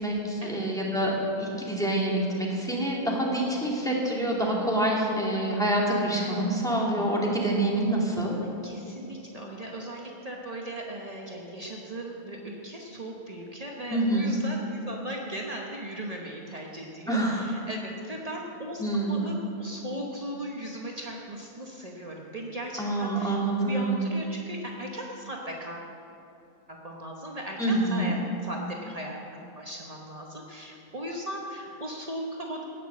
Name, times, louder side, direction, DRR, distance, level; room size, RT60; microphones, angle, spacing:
voice 1, 0.0-8.3 13.9-14.3 17.1-17.5 18.8-19.2 22.8-24.1 27.6-28.1, right 1 dB, ahead, -3 dB, 2.2 m, -26 dB
voice 2, 8.6-18.8 19.1-25.9 26.7-29.3 29.6-32.6, right 1 dB, 45° right, -1 dB, 0.5 m, -38 dB
17.5 x 7.0 x 7.4 m, 2.8 s
omnidirectional pair, 2.4 m